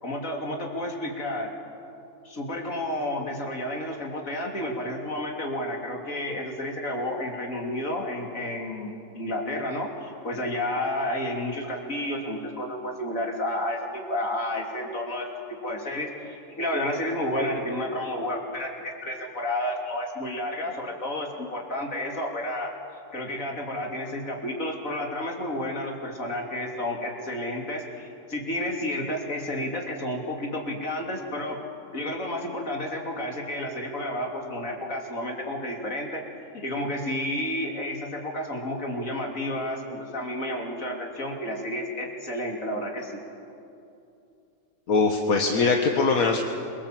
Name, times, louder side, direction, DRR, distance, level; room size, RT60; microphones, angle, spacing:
voice 1, 0.0-1.5 2.2-22.7 23.1-31.6 31.9-36.2 36.5-43.2, left 1 dB, 70° left, 0 dB, 3.4 m, -31 dB
voice 2, 44.9-46.4, left 4 dB, 85° left, 2 dB, 1.9 m, -22 dB
27.0 x 23.5 x 7.6 m, 2.7 s
omnidirectional pair, 1.4 m